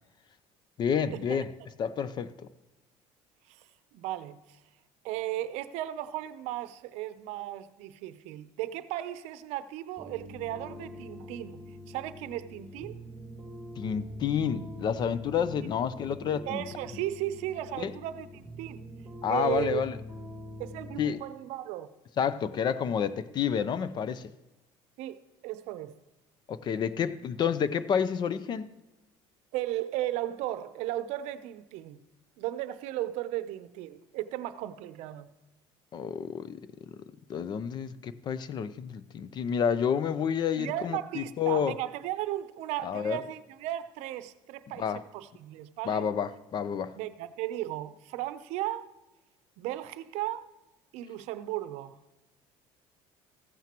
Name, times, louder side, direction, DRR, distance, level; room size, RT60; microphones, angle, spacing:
voice 1, 0.8-1.5 1.8-2.3 13.8-16.6 17.8-17.9 19.2-20.0 21.0-21.2 22.2-24.3 26.5-28.7 35.9-36.6 36.9-37.0 37.3-41.7 42.8-43.2 44.8-45.0 45.8-46.9, left 7 dB, 40° left, 0.5 m, -29 dB
voice 2, 3.9-4.4 5.0-11.6 11.9-13.0 16.4-18.8 19.3-19.8 20.6-21.9 25.0-25.9 29.5-32.0 32.4-35.3 40.6-46.1 47.0-48.9 49.6-50.5 50.9-52.0, right 14 dB, 75° right, 0.6 m, -35 dB
sound 1, 10.0-21.1, left 1 dB, 5° left, 3.1 m, -44 dB
15.0 x 9.2 x 3.0 m
cardioid pair, 125°, 12 cm